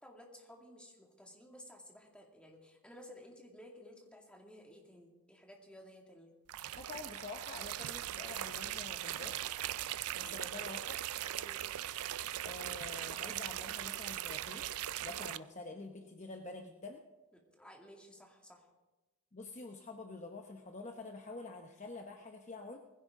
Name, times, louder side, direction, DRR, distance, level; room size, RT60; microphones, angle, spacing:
voice 1, 0.0-6.3 10.2-10.7 11.4-11.6 17.3-18.7, equal, 5° left, 0 dB, 2.2 m, -55 dB
sound 1, 6.5-15.4, right 12 dB, 85° right, 0.4 m, -40 dB
voice 2, 6.8-9.6 10.2-11.0 12.4-14.6 15.0-17.0 19.3-22.8, left 3 dB, 30° left, 3 dB, 0.9 m, -47 dB
19.5 x 15.5 x 3.7 m, 1.1 s
head